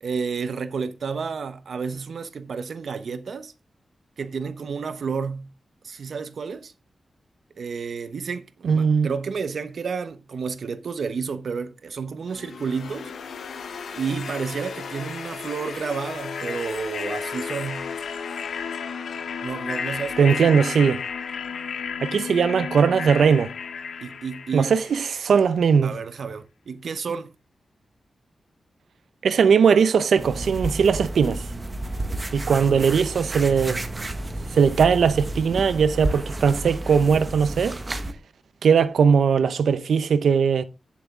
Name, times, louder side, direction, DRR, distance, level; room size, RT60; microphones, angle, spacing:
voice 1, 0.0-3.5 4.2-5.5 5.8-6.7 7.6-13.1 13.9-17.9 19.4-20.6 24.0-24.7 25.8-27.3 32.4-33.5, right 5 dB, 65° right, 1.0 m, -31 dB
voice 2, 8.6-9.1 20.2-21.0 22.0-23.5 24.5-25.9 29.2-31.5 32.3-33.8 34.5-37.8 38.6-40.6, right 6 dB, 90° right, 0.7 m, -19 dB
sound 1, 12.3-25.3, left 6 dB, 80° left, 1.1 m, -33 dB
sound 2, 30.2-38.1, right 1 dB, 25° right, 1.4 m, -31 dB
9.4 x 7.3 x 3.7 m
wide cardioid pair, 115°, 0 cm